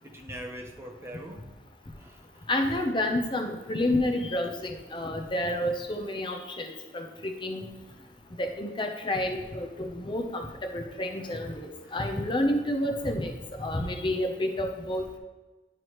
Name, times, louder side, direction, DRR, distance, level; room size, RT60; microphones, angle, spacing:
voice 1, 0.0-1.5 1.9-2.5 11.2-11.4 11.8-12.0, equal, 15° right, 3 dB, 0.6 m, -43 dB
voice 2, 2.5-7.7 8.4-13.3 13.6-15.2, left 1 dB, 30° left, 4 dB, 0.6 m, -29 dB
10.5 x 4.7 x 3.0 m, 1.2 s
head